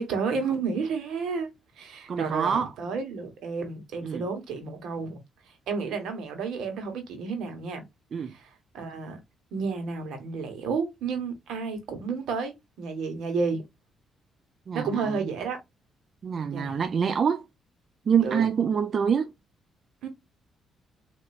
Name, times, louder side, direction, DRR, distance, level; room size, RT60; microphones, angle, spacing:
voice 1, 0.0-1.5 1.8-5.2 5.7-7.9 8.3-8.5 8.7-9.2 9.5-13.6 14.7-15.6 16.5-16.8 18.2-18.5 20.0-20.1, right 5 dB, 80° right, 1.5 m, -31 dB
voice 2, 2.1-2.7 4.0-4.2 8.1-8.3 14.7-15.2 16.2-17.4 18.1-19.3, right 7 dB, 50° right, 0.4 m, -25 dB
4.3 x 2.9 x 2.4 m
cardioid pair, 90°, 0 cm